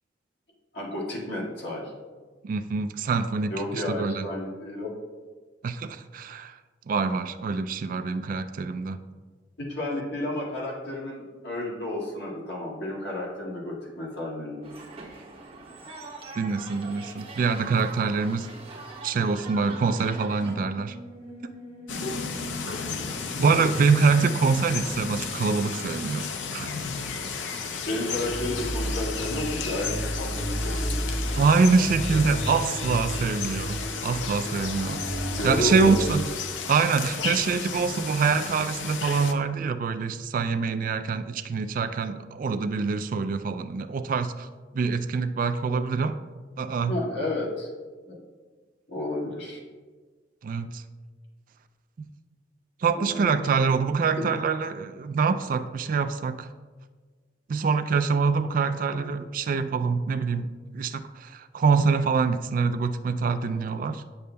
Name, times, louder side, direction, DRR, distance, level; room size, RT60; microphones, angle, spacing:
voice 1, 0.7-1.9 3.5-4.9 9.6-14.7 22.7-22.9 27.9-31.0 35.3-36.0 46.9-47.7 48.1-48.2 48.9-49.6 52.9-53.5 54.2-54.3 58.9-59.0, left 1 dB, 65° left, -4 dB, 1.8 m, -32 dB
voice 2, 2.4-4.2 5.6-6.6 6.9-9.0 16.4-18.5 19.0-21.0 21.4-21.5 23.4-26.7 31.4-35.0 35.4-36.2 36.7-44.5 44.7-46.2 46.6-46.9 50.4-50.8 52.0-52.1 52.8-56.5 57.5-60.5 60.7-64.0, right 5 dB, 45° right, 10 dB, 0.3 m, -25 dB
sound 1, 14.6-20.5, right 3 dB, 30° right, 1.0 m, -42 dB
sound 2, 19.9-26.9 27.3-27.7 28.1-36.2, right 1 dB, 35° left, 1.5 m, -35 dB
sound 3, 21.9-39.3, left 5 dB, 85° left, 0.6 m, -34 dB
9.3 x 6.8 x 2.2 m, 1.4 s
head